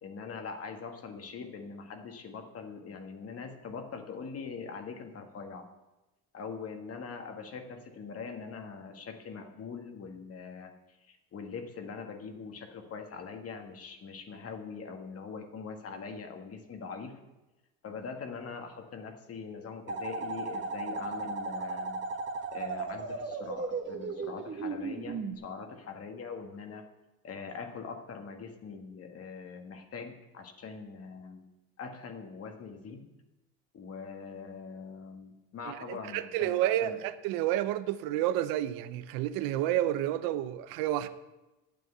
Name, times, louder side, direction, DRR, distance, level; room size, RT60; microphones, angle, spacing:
voice 1, 0.0-5.7 6.3-17.2 17.8-22.0 22.5-26.9 27.2-31.4 31.8-33.1 33.7-37.0, left 5 dB, 45° left, 1.7 m, -42 dB
sound 1, 19.9-25.3, right 4 dB, 35° right, 1.3 m, -36 dB
voice 2, 35.6-41.1, right 13 dB, 85° right, 0.8 m, -30 dB
9.2 x 7.7 x 8.1 m
cardioid pair, 105°, 33 cm